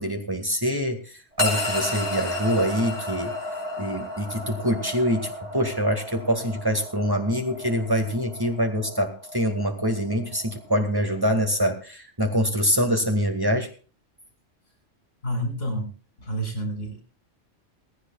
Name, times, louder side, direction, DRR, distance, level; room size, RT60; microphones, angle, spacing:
voice 1, 0.0-3.3 3.8-13.7, equal, 20° right, 5 dB, 2.0 m, -25 dB
sound 1, 1.4-11.7, left 1 dB, 35° right, 6.1 m, -33 dB
voice 2, 15.2-17.0, right 1 dB, 80° left, 5 dB, 5.7 m, -30 dB
18.0 x 16.0 x 2.4 m, 0.39 s
omnidirectional pair, 1.3 m